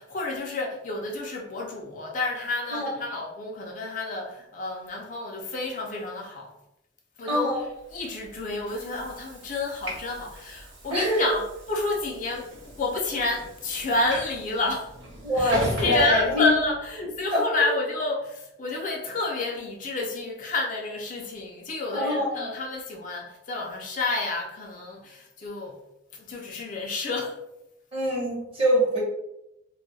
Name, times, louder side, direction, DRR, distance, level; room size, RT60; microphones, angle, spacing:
voice 1, 0.0-6.5 7.2-7.5 7.9-11.4 11.7-12.5 12.8-14.9 15.4-25.8 26.1-27.4, left 2 dB, 40° left, -1 dB, 0.4 m, -29 dB
voice 2, 2.7-3.0 7.3-7.6 10.9-11.3 15.2-16.5 17.0-17.7 21.9-22.5 27.9-29.0, equal, 30° right, -4 dB, 0.9 m, -25 dB
Train / Sliding door, 7.8-17.1, equal, 80° right, 0.7 m, -38 dB
2.3 x 2.1 x 3.9 m, 0.86 s
head